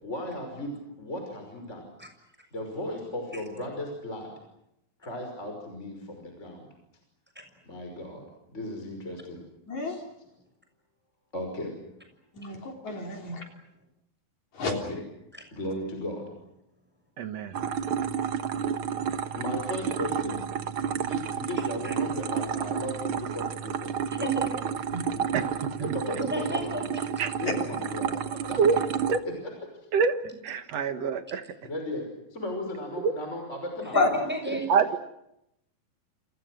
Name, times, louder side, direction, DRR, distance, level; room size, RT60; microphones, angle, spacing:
voice 1, 0.0-1.9 2.5-4.3 5.0-6.7 7.7-9.4 11.3-11.7 14.7-15.0 15.5-16.3 19.3-20.4 20.9-24.3 25.1-25.4 25.8-26.7 27.4-29.3 29.7-29.9 31.6-34.0 34.5-34.6, left 1 dB, 20° left, 3 dB, 5.7 m, -36 dB
voice 2, 9.7-10.0 12.3-13.4 14.5-14.7 24.9-25.0 33.9-34.1, left 2 dB, 50° left, 2 dB, 4.7 m, -29 dB
voice 3, 17.2-17.6 25.3-25.5 25.8-25.9 27.2-27.3 28.6-28.8 29.1-29.2 29.9-31.4 33.0-33.1 34.7-35.0, right 5 dB, 55° right, 9 dB, 2.0 m, -25 dB
sound 1, 17.5-29.2, right 7 dB, 85° right, 1.1 m, -31 dB
voice 4, 24.2-24.6 26.3-27.1 30.2-30.3 33.8-34.7, right 1 dB, 5° right, 5 dB, 6.0 m, -33 dB
29.5 x 28.5 x 6.4 m, 0.83 s
omnidirectional pair, 4.2 m